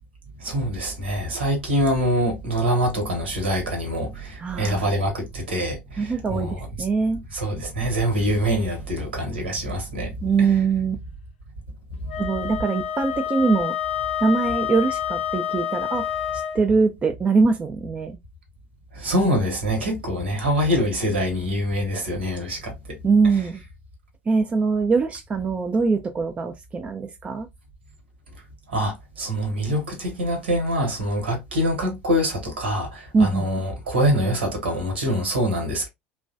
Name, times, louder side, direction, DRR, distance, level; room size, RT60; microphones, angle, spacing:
voice 1, 0.4-6.6 7.3-10.5 12.0-12.1 18.9-23.0 28.7-35.9, equal, 75° right, 1.0 m, -25 dB
voice 2, 4.4-5.0 6.0-7.2 10.2-11.0 12.2-13.8 14.2-16.1 16.5-18.1 23.0-23.6 24.3-27.5 33.1-33.5, right 4 dB, 20° right, 0.4 m, -22 dB
Wind instrument woodwind instrument, 12.1-16.6, left 9 dB, 70° left, 0.5 m, -28 dB
3.0 x 2.2 x 2.5 m
figure-of-eight pair, 70°, 6 cm